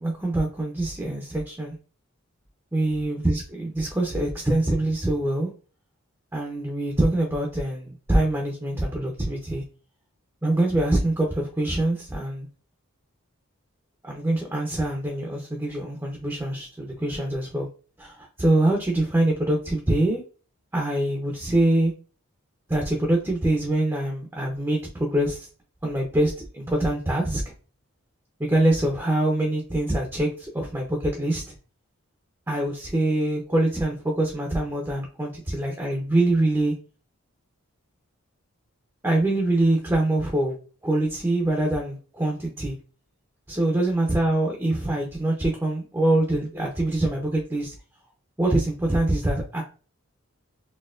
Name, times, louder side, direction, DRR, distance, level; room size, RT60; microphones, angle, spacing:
voice 1, 0.0-1.7 2.7-5.5 6.3-9.6 10.4-12.5 14.0-17.7 18.0-20.2 20.7-21.9 22.7-25.5 25.8-27.4 28.4-31.5 32.5-36.7 39.0-40.5 40.8-42.8 43.5-47.7 48.4-49.6, right 1 dB, 10° right, 0 dB, 0.6 m, -24 dB
4.2 x 2.8 x 2.4 m, 0.36 s
head